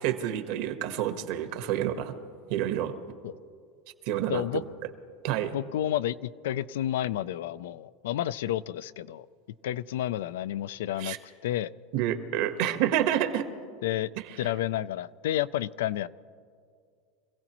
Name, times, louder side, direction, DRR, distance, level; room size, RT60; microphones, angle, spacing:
voice 1, 0.0-2.1 2.5-2.9 4.1-4.4 5.2-5.6 11.0-11.2 11.9-13.5, right 11 dB, 60° right, 8 dB, 1.2 m, -28 dB
voice 2, 4.3-4.6 5.5-9.3 9.6-11.2 11.4-11.7 13.8-14.1 14.4-16.1, left 12 dB, 85° left, 16 dB, 0.4 m, -30 dB
26.0 x 16.0 x 3.0 m, 2.3 s
supercardioid pair, 150°, 0 cm